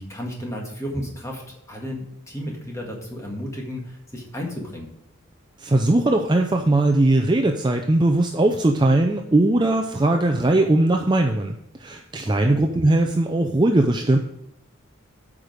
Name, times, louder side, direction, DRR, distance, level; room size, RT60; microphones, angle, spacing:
voice 1, 0.0-1.4 1.7-4.9 12.4-12.6, equal, 15° left, -1 dB, 1.8 m, -33 dB
voice 2, 5.6-14.2, right 2 dB, 20° right, 4 dB, 0.5 m, -19 dB
8.5 x 5.1 x 6.3 m, 0.80 s
head